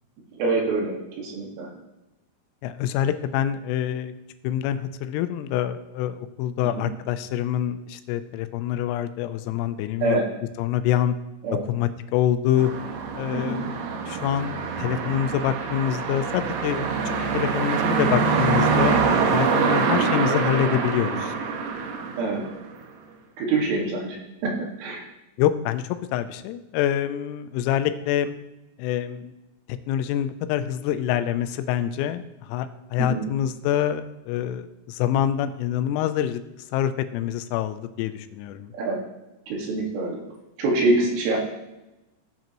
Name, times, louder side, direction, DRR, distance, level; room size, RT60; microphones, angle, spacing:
voice 1, 0.4-1.0 1.2-1.7 6.7-6.9 10.0-10.2 11.4-11.6 13.3-13.7 19.8-20.1 22.2-22.4 23.4-24.2 24.4-24.5 24.8-25.0 33.0-33.2 38.7-39.0 39.5-40.2 40.6-41.4, right 3 dB, 70° right, -2 dB, 4.2 m, -25 dB
voice 2, 2.6-4.1 4.4-10.2 10.6-11.1 11.6-12.7 13.2-16.9 17.3-19.0 19.3-21.3 25.4-28.3 28.8-29.3 29.9-36.4 36.7-38.7, left 11 dB, 85° left, 10 dB, 3.3 m, -26 dB
sound 1, 12.6-22.8, right 5 dB, 85° right, 4.0 m, -25 dB
15.5 x 7.8 x 3.0 m, 0.96 s
omnidirectional pair, 6.0 m